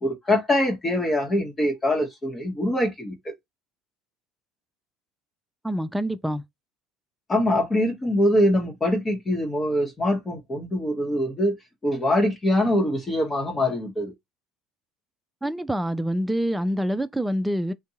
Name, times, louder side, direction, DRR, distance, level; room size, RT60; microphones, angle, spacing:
voice 1, 0.0-3.3 7.3-11.6 11.8-14.1, left 1 dB, 25° left, 1.0 m, -23 dB
voice 2, 5.6-6.4 15.4-17.7, equal, 5° right, 0.4 m, -26 dB
2.6 x 2.2 x 2.8 m
hypercardioid pair, 70°, 0 cm